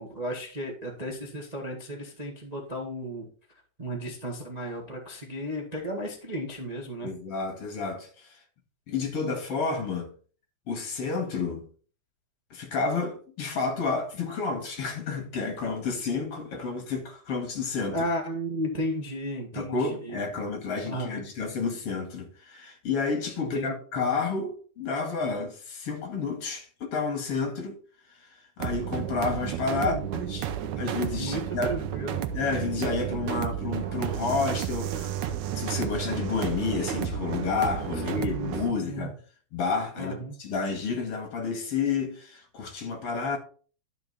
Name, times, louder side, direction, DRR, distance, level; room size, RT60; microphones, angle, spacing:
voice 1, 0.0-3.3 3.8-7.1 17.9-20.2 20.8-21.2 23.5-23.7 23.9-24.1 29.7-30.0 31.1-32.2 38.2-39.1 40.0-40.3, equal, 20° right, 1.1 m, -34 dB
voice 2, 7.0-8.4 8.9-10.1 10.7-11.7 12.5-18.1 19.5-27.8 28.1-30.5 30.8-31.7 32.3-39.2 39.5-43.4, left 4 dB, 55° left, 2.8 m, -30 dB
sound 1, 28.6-38.7, right 10 dB, 80° right, 2.2 m, -32 dB
12.0 x 5.4 x 4.2 m
omnidirectional pair, 3.4 m